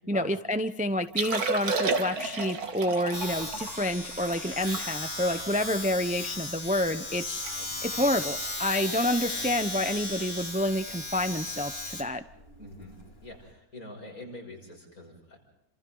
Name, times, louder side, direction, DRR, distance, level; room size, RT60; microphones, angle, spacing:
voice 1, 0.1-7.5 7.8-12.2, left 1 dB, 10° right, 9 dB, 0.5 m, -28 dB
Liquid, 1.0-6.4 6.9-7.0 7.2-7.6 7.8-8.1 8.7-8.9 10.4-10.5, right 4 dB, 80° right, 2.2 m, -33 dB
Domestic sounds home sounds, 3.1-13.5, left 2 dB, 40° left, 3.1 m, -36 dB
voice 2, 12.6-15.4, left 1 dB, 70° left, 0 dB, 6.9 m, -45 dB
29.5 x 26.5 x 3.9 m, 0.80 s
omnidirectional pair, 1.6 m